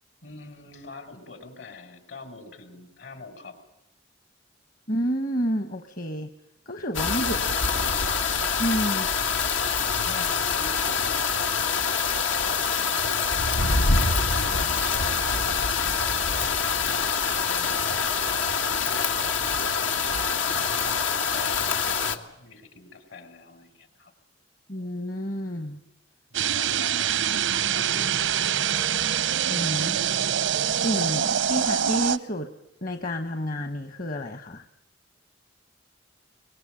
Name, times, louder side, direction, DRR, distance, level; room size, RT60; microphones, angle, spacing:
voice 1, 0.2-3.6 7.2-8.0 10.0-12.8 13.8-18.1 18.9-24.1 26.3-27.2 27.7-28.8, left 3 dB, 70° left, 8 dB, 5.1 m, -45 dB
voice 2, 4.9-6.3 6.7-7.7 8.6-9.1 24.7-25.8 29.5-30.0 30.7-32.5 32.8-34.6, equal, 45° left, 7 dB, 1.2 m, -30 dB
sound 1, 6.9-22.2, left 5 dB, 90° left, 1.8 m, -25 dB
sound 2, 26.3-32.2, right 9 dB, 85° right, 0.8 m, -25 dB
23.5 x 20.5 x 9.0 m, 0.84 s
head